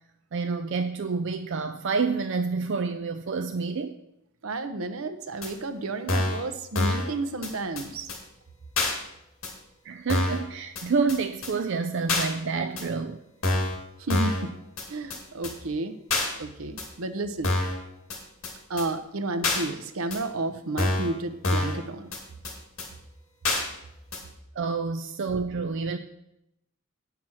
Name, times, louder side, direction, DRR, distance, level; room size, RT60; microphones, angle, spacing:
voice 1, 0.3-3.9 9.8-13.2 24.6-26.0, right 4 dB, 60° right, 0.5 m, -28 dB
voice 2, 4.4-8.1 14.0-14.5 14.9-15.9 16.4-17.6 18.7-22.1, right 2 dB, 80° right, 0.8 m, -32 dB
sound 1, 5.4-5.5 6.1-6.4 6.8-7.1 7.4-7.5 7.8-7.9 8.1-8.2 8.8-8.9 9.4-9.5 10.1-10.4 10.8-10.9 11.1-11.2 11.4-11.5 12.1-12.3 12.8-12.9 13.4-13.8 14.1-14.4 14.8-14.9 15.1-15.2 15.4-15.5 16.1-16.3 16.8-16.9 17.4-17.8 18.1-18.2 18.4-18.5 18.8-18.9 19.4-19.6 20.1-20.2 20.8-21.1 21.4-21.8 22.1-22.2 22.4-22.5 22.8-22.9 23.4-23.6 24.1-24.2, left 2 dB, 80° left, 2.5 m, -26 dB
9.1 x 6.0 x 6.1 m
head